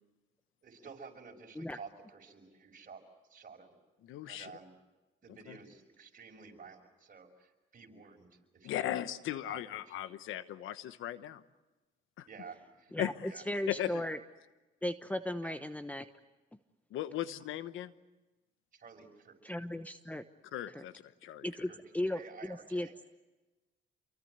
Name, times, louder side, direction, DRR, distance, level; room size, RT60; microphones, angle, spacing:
voice 1, 0.6-3.0 3.3-3.8 4.3-4.8 5.2-10.1 12.2-12.9 13.3-13.4 13.8-13.9 15.4-15.6 18.7-19.5 21.7-21.8 22.1-22.9, right 5 dB, 45° right, 3 dB, 6.0 m, -52 dB
voice 2, 4.0-4.5 5.5-5.6 8.6-11.4 12.2-12.3 13.0-13.1 13.7-13.9 16.9-17.9 20.5-21.5, left 12 dB, 85° left, 13 dB, 1.1 m, -37 dB
voice 3, 12.9-14.2 14.8-16.1 19.4-20.2 20.7-20.8 21.4-22.9, left 1 dB, 5° left, 10 dB, 1.0 m, -36 dB
28.0 x 23.5 x 8.1 m, 1.1 s
cardioid pair, 90°, 20 cm